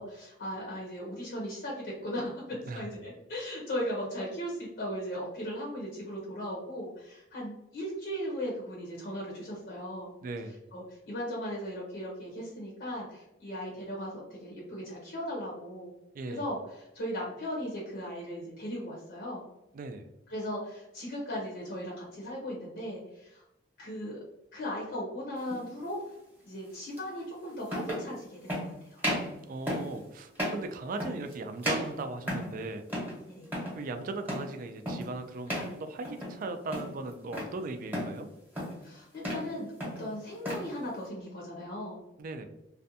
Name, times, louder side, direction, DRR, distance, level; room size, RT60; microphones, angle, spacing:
voice 1, 0.0-2.4 2.7-10.1 10.7-15.9 16.3-19.4 20.3-23.4 23.8-24.2 24.5-26.0 26.4-29.0 33.3-33.5 38.8-39.7 40.0-42.0, equal, 65° left, -4 dB, 0.7 m, -37 dB
voice 2, 10.2-10.5 16.1-16.4 19.7-20.1 29.5-32.8 33.7-38.3 42.2-42.5, right 3 dB, 50° right, 7 dB, 0.3 m, -38 dB
sound 1, 25.5-25.7 27.0-27.1 27.7-28.1 28.5-28.7 29.0-29.3 29.7-29.9 30.3-30.6 31.0-31.3 31.6-32.6 32.9-33.2 33.4-33.8 34.3-34.5 34.9-35.1 35.5-35.7 36.0-36.4 36.7-37.5 37.9-38.2 38.5-38.8 39.1-39.5 39.8-40.7, equal, 10° right, 0.9 m, -34 dB
2.5 x 2.2 x 2.6 m, 0.88 s
head